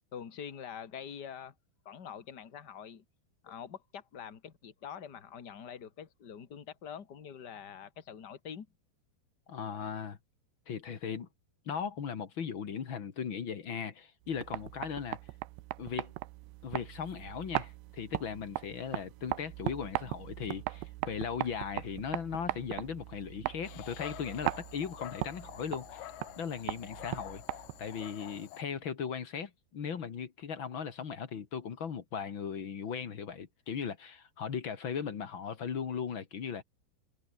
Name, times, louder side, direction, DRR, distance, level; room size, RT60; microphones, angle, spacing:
voice 1, 0.1-1.5 1.8-3.0 3.4-8.7, left 8 dB, 85° left, 0.9 m, -45 dB
voice 2, 9.5-10.2 10.7-11.3 11.6-15.2 15.8-16.1 16.6-26.1 26.4-27.4 27.8-36.6, left 7 dB, 50° left, 1.4 m, -38 dB
sound 1, 14.2-28.0, right 20 dB, 85° right, 2.9 m, -39 dB
Dog, 23.6-28.6, left 13 dB, 70° left, 2.3 m, -48 dB
omnidirectional pair, 5.1 m